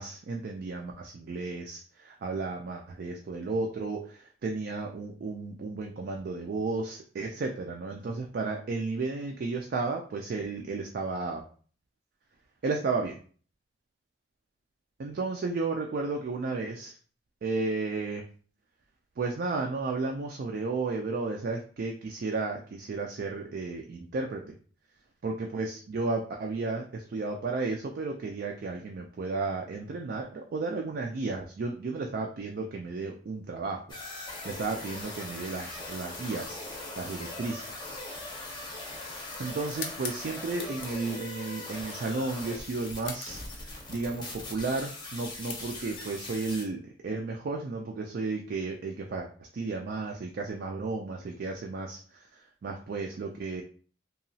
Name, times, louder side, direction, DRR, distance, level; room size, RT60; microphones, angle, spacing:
voice 1, 0.0-11.4 12.6-13.2 15.0-16.9 17.4-18.2 19.2-24.5 25.2-37.7 39.4-49.3 49.5-53.6, right 3 dB, 60° right, 1 dB, 0.3 m, -33 dB
sound 1, 33.9-46.6, left 2 dB, 25° left, 0.6 m, -41 dB
sound 2, 35.1-46.1, left 6 dB, 85° left, 0.5 m, -48 dB
2.9 x 2.3 x 2.6 m, 0.42 s
head